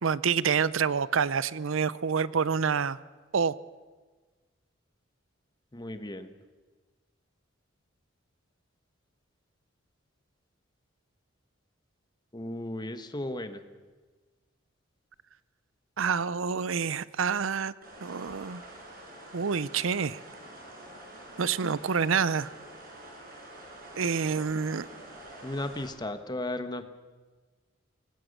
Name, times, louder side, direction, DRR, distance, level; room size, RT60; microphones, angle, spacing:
voice 1, 0.0-3.0 3.3-3.5 16.0-17.7 18.0-18.6 19.3-20.2 21.4-22.5 24.0-24.9, right 6 dB, 80° right, 0.6 m, -27 dB
voice 2, 5.7-6.3 12.3-13.6 25.4-26.8, left 1 dB, 20° left, 1.3 m, -35 dB
sound 1, 17.8-25.9, right 1 dB, 50° right, 5.7 m, -47 dB
24.5 x 20.0 x 6.7 m
head